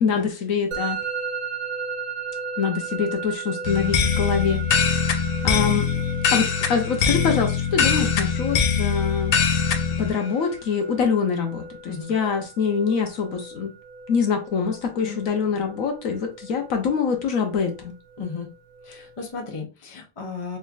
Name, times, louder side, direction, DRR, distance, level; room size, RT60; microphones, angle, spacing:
voice 1, 0.0-1.0 2.6-4.6 5.4-5.9 6.3-9.4 10.0-13.7 14.1-17.9, left 6 dB, 70° left, 1.1 m, -24 dB
Musical instrument, 0.7-19.6, right 5 dB, 75° right, 1.1 m, -36 dB
sound 1, 3.6-10.1, left 6 dB, 90° left, 0.5 m, -22 dB
voice 2, 18.2-18.5 18.8-20.6, left 5 dB, 25° left, 0.7 m, -34 dB
3.3 x 3.3 x 2.4 m
omnidirectional pair, 1.6 m